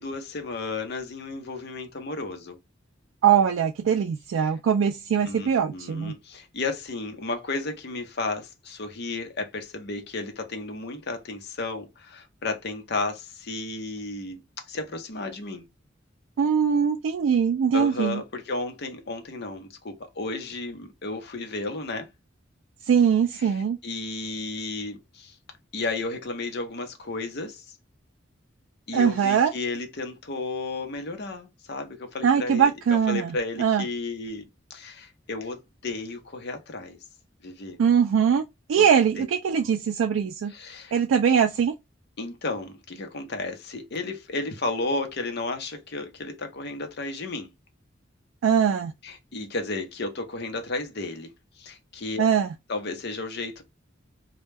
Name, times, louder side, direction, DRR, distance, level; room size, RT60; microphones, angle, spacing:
voice 1, 0.0-2.6 5.3-15.7 17.7-22.1 23.4-23.5 23.8-25.3 25.7-27.8 28.9-34.4 34.7-37.0 37.4-37.8 38.8-38.9 39.2-39.3 39.6-39.7 40.5-40.9 42.2-47.5 49.0-51.3 51.6-52.2 52.7-53.6, left 3 dB, 55° left, 0.7 m, -33 dB
voice 2, 3.2-6.1 16.4-18.2 22.9-23.8 28.9-29.5 32.2-33.8 37.8-38.4 38.7-40.5 40.9-41.7 48.4-48.9 52.2-52.5, right 7 dB, 85° right, 0.3 m, -22 dB
2.2 x 2.1 x 3.1 m
head